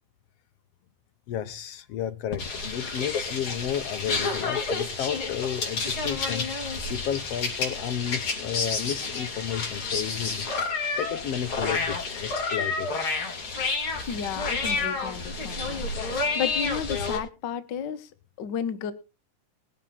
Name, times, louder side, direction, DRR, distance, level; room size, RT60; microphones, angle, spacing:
voice 1, 1.3-6.5 6.9-10.5 11.0-12.9, left 10 dB, 70° left, 1.6 m, -32 dB
sound 1, 2.3-17.2, left 4 dB, 40° left, 3.3 m, -30 dB
voice 2, 14.1-18.1 18.4-18.9, left 8 dB, 90° left, 0.9 m, -33 dB
20.5 x 7.4 x 4.2 m
omnidirectional pair, 3.6 m